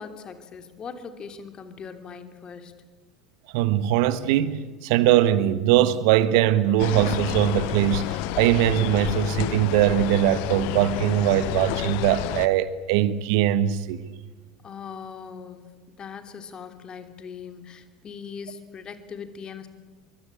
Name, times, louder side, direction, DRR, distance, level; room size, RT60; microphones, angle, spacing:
voice 1, 0.0-2.7 14.4-15.7 16.0-19.7, left 6 dB, 30° left, 3.0 m, -40 dB
voice 2, 3.5-14.0, right 12 dB, 55° right, 1.5 m, -21 dB
sound 1, 6.8-12.5, left 16 dB, 55° left, 0.8 m, -30 dB
24.5 x 23.5 x 8.6 m
figure-of-eight pair, 75°, 3 cm